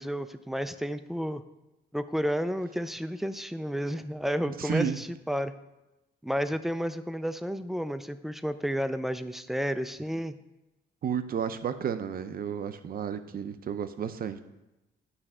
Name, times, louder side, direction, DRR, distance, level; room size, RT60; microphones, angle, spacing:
voice 1, 0.0-1.4 1.9-5.5 6.2-10.4, equal, ahead, 11 dB, 0.4 m, -31 dB
voice 2, 4.6-5.0 11.0-14.4, right 7 dB, 50° right, 10 dB, 0.6 m, -32 dB
9.8 x 3.3 x 6.1 m, 0.98 s
cardioid pair, 90°, 20 cm